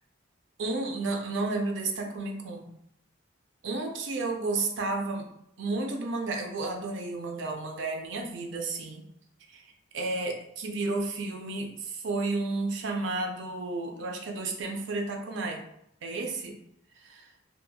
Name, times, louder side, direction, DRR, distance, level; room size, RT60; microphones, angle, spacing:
voice 1, 0.6-2.7 3.6-5.3 5.6-9.1 9.5-15.6 16.0-16.6 17.0-17.3, right 3 dB, 65° right, 2 dB, 0.4 m, -32 dB
3.0 x 2.3 x 2.2 m, 0.75 s
head